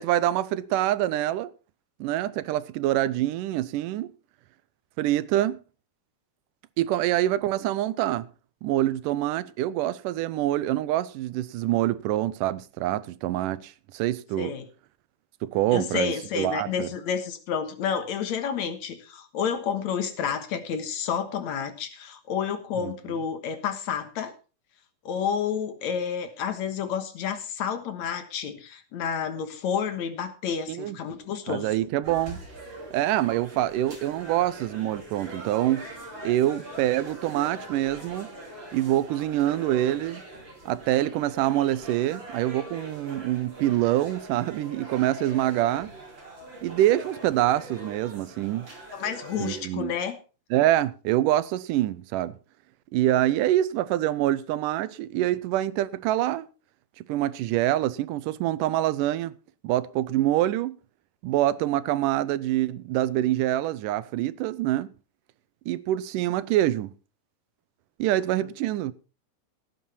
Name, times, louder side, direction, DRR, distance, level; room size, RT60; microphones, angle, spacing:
voice 1, 0.0-1.5 2.0-4.1 5.0-5.6 6.8-8.3 8.6-14.5 15.4-16.9 22.8-22.9 30.7-31.0 31.5-32.4 32.9-35.9 36.2-38.3 38.7-40.2 40.7-45.9 46.6-48.7 49.4-49.9 50.5-52.3 52.9-56.5 57.1-59.4 59.6-60.8 61.2-64.9 65.7-66.9 68.0-68.9, right 14 dB, 90° right, 2.3 m, -25 dB
voice 2, 15.7-24.3 25.1-31.7 48.9-50.2 68.4-68.5, left 7 dB, 65° left, 2.6 m, -30 dB
sound 1, 32.0-49.6, right 1 dB, 35° right, 4.6 m, -42 dB
17.0 x 9.2 x 4.2 m
omnidirectional pair, 3.6 m